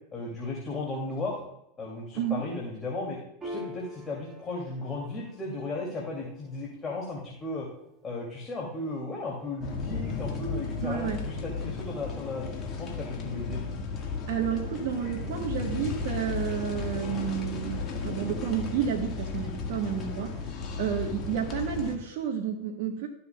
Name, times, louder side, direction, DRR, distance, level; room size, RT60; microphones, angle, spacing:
voice 1, 0.1-1.4 1.8-3.2 3.4-7.7 8.0-13.6, left 2 dB, 25° left, -2 dB, 2.6 m, -35 dB
Piano, 3.4-10.3, left 1 dB, 20° right, 2.5 m, -47 dB
sound 1, 9.6-22.0, left 4 dB, 40° left, 1.8 m, -34 dB
voice 2, 10.8-11.2 14.3-20.3 20.8-23.1, right 8 dB, 65° right, 1 dB, 1.4 m, -31 dB
13.5 x 7.0 x 2.4 m, 0.80 s
hypercardioid pair, 95°, 0 cm